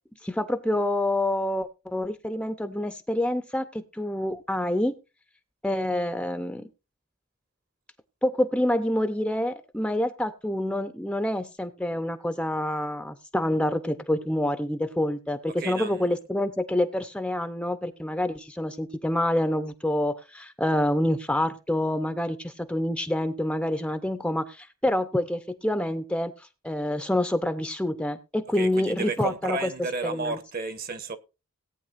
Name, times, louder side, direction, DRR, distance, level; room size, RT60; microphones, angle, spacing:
voice 1, 0.2-4.9 5.6-6.7 8.2-26.3 26.6-29.7 30.0-30.4, left 1 dB, 5° left, 0.7 m, -27 dB
voice 2, 15.5-16.1 28.5-31.2, right 3 dB, 40° right, 1.2 m, -32 dB
18.0 x 9.1 x 2.5 m
head